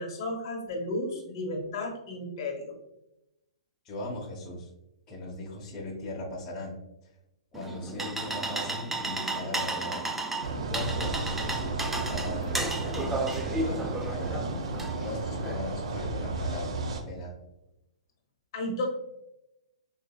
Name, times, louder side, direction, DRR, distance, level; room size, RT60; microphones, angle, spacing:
voice 1, 0.0-2.8 18.5-18.8, left 1 dB, 55° left, 1 dB, 1.0 m, -33 dB
voice 2, 3.8-4.7 5.1-6.8 7.0-7.1 7.5-17.3, left 1 dB, 25° left, -4 dB, 0.8 m, -39 dB
sound 1, 7.5-15.5, right 2 dB, 5° right, 0.3 m, -33 dB
sound 2, 10.4-17.0, right 3 dB, 70° right, 0.5 m, -33 dB
4.0 x 2.6 x 2.2 m, 0.87 s
hypercardioid pair, 130°, 3 cm